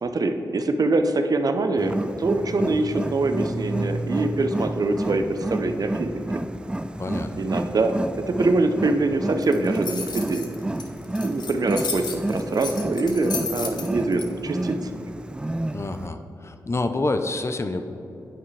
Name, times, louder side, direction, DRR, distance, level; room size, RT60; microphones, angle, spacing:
voice 1, 0.0-6.1 7.4-8.0 8.3-10.5 11.2-14.9, right 2 dB, 55° right, 7 dB, 0.7 m, -24 dB
Wild animals, 1.8-16.1, right 1 dB, 15° right, 0.3 m, -30 dB
voice 2, 7.0-7.3 15.7-17.8, left 2 dB, 40° left, 8 dB, 0.6 m, -27 dB
sound 1, 9.4-14.2, left 5 dB, 75° left, 0.9 m, -33 dB
9.0 x 8.9 x 3.3 m, 2.9 s
cardioid pair, 55°, 7 cm